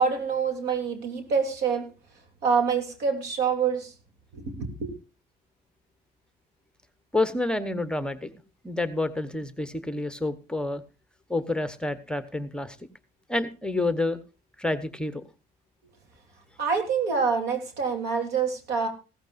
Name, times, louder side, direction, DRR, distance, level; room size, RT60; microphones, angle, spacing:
voice 1, 0.0-1.8 2.4-3.9 4.3-4.9 16.6-18.9, right 5 dB, 80° right, 5 dB, 3.3 m, -26 dB
voice 2, 7.1-8.3 8.6-10.8 11.3-12.8 13.3-14.2 14.6-15.2, left 2 dB, 5° left, 11 dB, 1.0 m, -28 dB
16.0 x 14.0 x 2.6 m, 0.31 s
cardioid pair, 110°, 17 cm